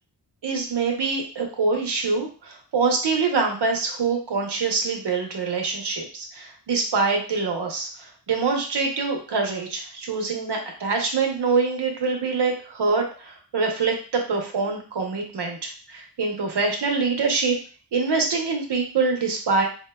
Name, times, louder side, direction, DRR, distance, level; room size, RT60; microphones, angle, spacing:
voice 1, 0.4-17.6 17.9-19.6, right 4 dB, 75° right, 2 dB, 0.9 m, -25 dB
4.4 x 2.1 x 2.2 m, 0.38 s
wide cardioid pair, 105°, 42 cm